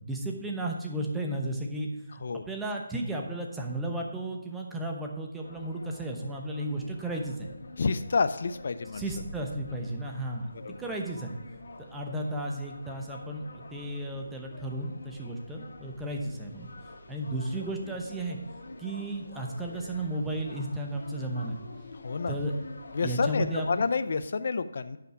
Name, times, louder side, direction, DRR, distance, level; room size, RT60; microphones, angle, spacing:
voice 1, 0.0-1.9 2.4-7.5 8.9-10.5 10.8-11.4 11.8-16.7 17.1-18.4 18.8-21.6 22.3-22.5 23.0-23.7, right 1 dB, 5° right, 1 dB, 0.9 m, -34 dB
sound 1, 5.4-23.9, left 2 dB, 70° left, 1.5 m, -47 dB
voice 2, 7.8-9.0 10.7-10.8 22.0-22.3 22.9-25.0, left 4 dB, 55° left, 12 dB, 0.5 m, -28 dB
10.0 x 5.8 x 4.8 m, 0.97 s
hypercardioid pair, 165°, 0 cm